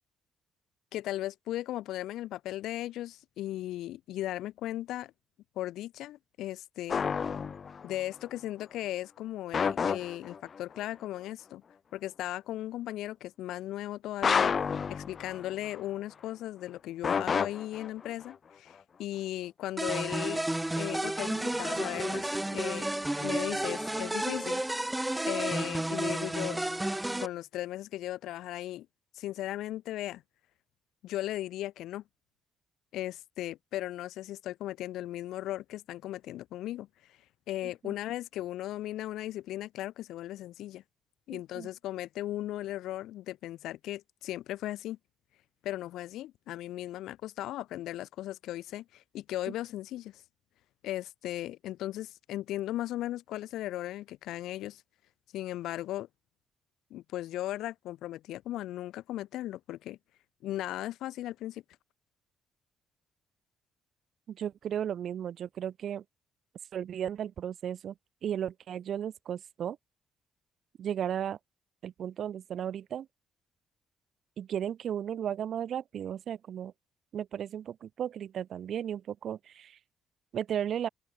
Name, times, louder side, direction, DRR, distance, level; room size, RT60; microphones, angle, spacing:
voice 1, 0.9-5.1 5.6-7.1 7.8-11.6 11.9-14.5 14.9-20.4 20.8-22.9 23.2-24.9 25.3-26.6 27.2-28.9 29.1-30.2 31.0-32.0 32.9-36.9 37.5-40.8 41.3-45.0 45.6-50.2 50.8-54.8 55.3-56.1 56.9-60.0 60.4-61.6, left 14 dB, 85° left, 5.0 m, -37 dB
sound 1, 6.9-7.9 9.5-10.6 14.2-15.8 17.0-18.3, left 6 dB, 45° left, 1.1 m, -30 dB
sound 2, 19.8-27.3, right 1 dB, 10° right, 0.5 m, -32 dB
voice 2, 41.3-41.7 64.3-66.0 66.7-67.9 68.2-69.8 70.8-71.4 71.8-73.1 74.4-76.7 77.1-79.8 80.3-80.9, right 9 dB, 65° right, 1.3 m, -35 dB
open air
cardioid pair, 90°, 0 cm